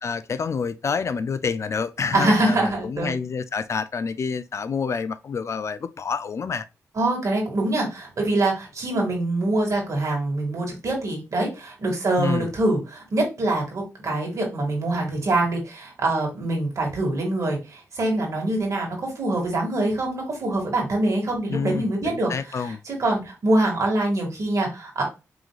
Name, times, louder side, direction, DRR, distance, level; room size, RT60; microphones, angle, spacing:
voice 1, 0.0-6.7 12.2-12.5 21.5-22.8, left 5 dB, 50° left, 0.4 m, -28 dB
voice 2, 2.1-3.1 7.0-25.0, right 2 dB, 55° right, 2.2 m, -24 dB
4.8 x 3.7 x 2.3 m
cardioid pair, 85°, 6 cm